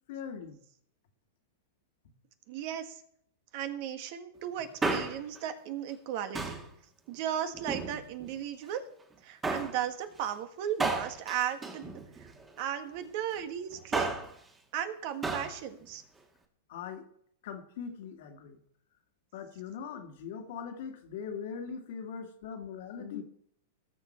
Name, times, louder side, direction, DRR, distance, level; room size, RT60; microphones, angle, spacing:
voice 1, 0.1-0.6 16.7-17.1 17.4-18.6 19.3-23.2, left 7 dB, 65° left, 4 dB, 2.1 m, -41 dB
voice 2, 2.5-3.0 3.5-6.6 7.1-8.8 9.2-11.9 12.2-12.3 12.6-14.1 14.7-16.0, right 10 dB, 55° right, 8 dB, 1.6 m, -36 dB
Male speech man speaking, 4.6-5.4 6.3-6.7 7.5-8.3 9.4-9.8 10.8-12.5 13.7-14.4 15.2-15.6 15.8-15.9, right 3 dB, 15° right, 1.9 m, -33 dB
19.0 x 7.3 x 4.4 m, 0.67 s
hypercardioid pair, 120°, 0 cm